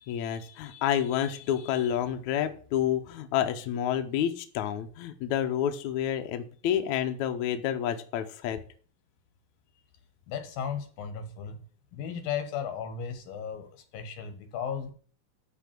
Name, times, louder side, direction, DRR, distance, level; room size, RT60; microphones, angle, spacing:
voice 1, 0.0-8.6, left 10 dB, 70° left, 6 dB, 2.1 m, -29 dB
voice 2, 10.3-11.6 11.9-14.9, left 7 dB, 90° left, 8 dB, 3.4 m, -35 dB
12.0 x 4.7 x 7.6 m, 0.43 s
omnidirectional pair, 4.0 m